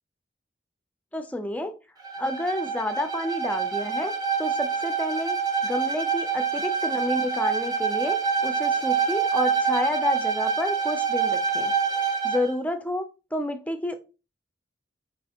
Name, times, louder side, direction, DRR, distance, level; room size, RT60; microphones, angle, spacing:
voice 1, 1.1-1.8 2.2-4.1 4.4-11.7 12.2-13.1 13.3-13.9, left 1 dB, 10° left, 0.4 m, -30 dB
Bowed string instrument, 2.0-12.5, right 6 dB, 20° right, 0.7 m, -26 dB
4.7 x 3.2 x 2.8 m
head